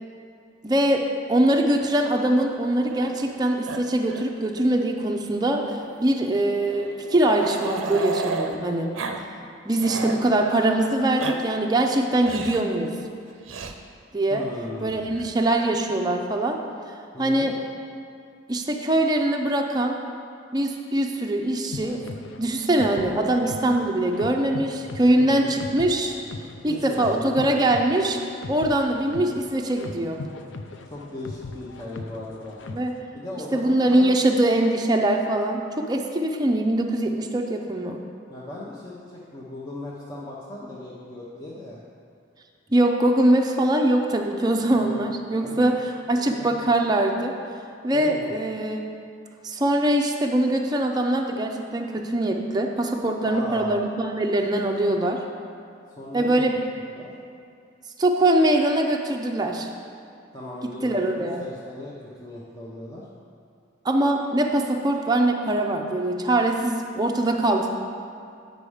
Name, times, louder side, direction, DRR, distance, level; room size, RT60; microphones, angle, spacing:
voice 1, 0.6-1.0 1.3-8.9 9.7-12.9 14.1-14.4 14.8-16.6 17.2-17.5 18.5-20.0 20.5-22.1 22.4-26.2 26.6-28.2 28.5-30.2 32.7-32.9 33.5-38.0 42.7-45.7 46.1-47.3 47.8-48.9 49.4-55.2 56.1-56.6 58.0-59.7 60.8-61.4 63.8-67.7, right 1 dB, 20° right, 2 dB, 0.5 m, -22 dB
Growling, 1.5-3.4 3.7-3.8 4.1-4.3 4.6-4.7 5.7-8.6 8.9-9.2 9.5-10.2 10.9-11.4 12.2-12.7 13.5-13.7 14.9-15.5, right 4 dB, 90° right, 0.6 m, -34 dB
voice 2, 9.8-10.1 14.3-15.1 17.1-17.5 25.2-25.5 26.7-27.6 30.8-32.6 33.1-34.3 38.3-41.8 44.7-45.0 45.4-45.7 46.1-46.6 47.9-48.3 53.2-53.8 56.0-56.6 56.9-57.1 60.3-61.9 62.2-63.1, left 1 dB, 20° left, -7 dB, 0.8 m, -37 dB
sound 1, 21.7-33.0, left 3 dB, 70° left, 0.5 m, -39 dB
8.4 x 5.3 x 4.9 m, 2.4 s
head